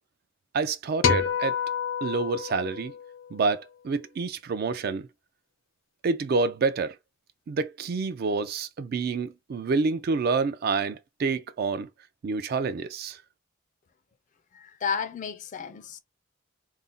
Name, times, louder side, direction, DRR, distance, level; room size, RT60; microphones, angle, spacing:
voice 1, 0.5-1.6 2.0-2.9 3.3-5.1 6.0-7.0 7.5-11.9 12.2-13.2, right 4 dB, 50° right, 0.3 m, -28 dB
sound 1, 1.0-3.5, left 6 dB, 85° left, 0.7 m, -28 dB
voice 2, 14.5-16.0, left 6 dB, 40° left, 0.4 m, -32 dB
2.5 x 2.1 x 3.7 m
head